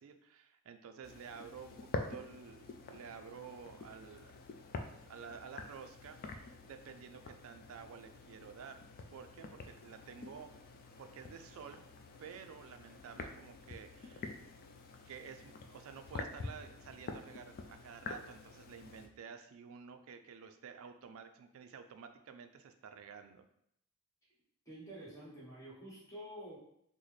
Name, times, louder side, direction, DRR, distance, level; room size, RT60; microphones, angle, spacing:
voice 1, 0.0-4.4 5.1-8.8 9.1-10.5 11.0-11.8 12.2-14.4 15.1-23.4, right 6 dB, 65° right, 8 dB, 0.4 m, -51 dB
sound 1, 1.0-19.1, left 3 dB, 45° left, 0.3 m, -47 dB
voice 2, 24.6-26.6, equal, 15° left, -6 dB, 1.1 m, -49 dB
3.9 x 2.1 x 3.1 m, 0.72 s
head